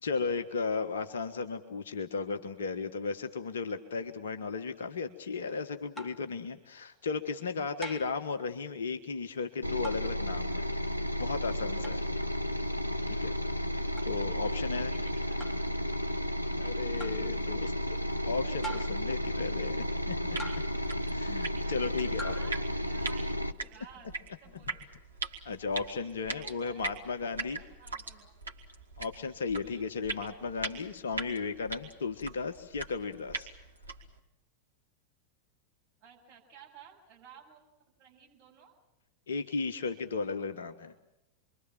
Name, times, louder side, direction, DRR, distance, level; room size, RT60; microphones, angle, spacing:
voice 1, 0.0-10.7 11.2-12.1 13.1-13.3 14.0-14.9 16.6-20.1 21.1-22.4 25.4-27.6 29.0-33.5 39.3-40.9, left 4 dB, 65° left, 8 dB, 1.4 m, -35 dB
sound 1, 6.0-6.3 7.8-8.2 9.8-10.1 11.8-12.0 14.0-14.1 15.4-15.7 17.0-17.3 18.6-19.1 20.4-20.8 22.2-22.5, right 2 dB, 5° left, 3.2 m, -42 dB
sound 2, 9.6-23.5, equal, 85° left, 1.0 m, -33 dB
voice 2, 14.4-15.8 21.6-24.1 24.4-24.8 26.2-28.3 29.6-29.9 36.0-37.6 38.0-38.7, right 7 dB, 35° right, -2 dB, 7.7 m, -55 dB
sound 3, 20.3-34.2, right 3 dB, 75° right, 2.4 m, -42 dB
28.0 x 23.5 x 7.6 m, 0.92 s
figure-of-eight pair, 90°, 0 cm